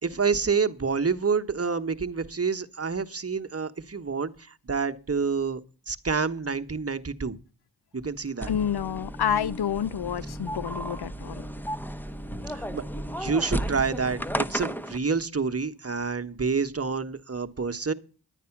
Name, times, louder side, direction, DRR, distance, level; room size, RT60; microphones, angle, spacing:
voice 1, 0.0-5.6 5.9-7.4 7.9-8.5 12.5-12.8 13.2-17.9, right 5 dB, 35° right, 1.2 m, -28 dB
sound 1, 8.4-15.0, equal, 5° left, 0.9 m, -34 dB
voice 2, 8.5-11.4, left 9 dB, 70° left, 0.6 m, -28 dB
11.0 x 9.2 x 5.9 m
cardioid pair, 40°, 41 cm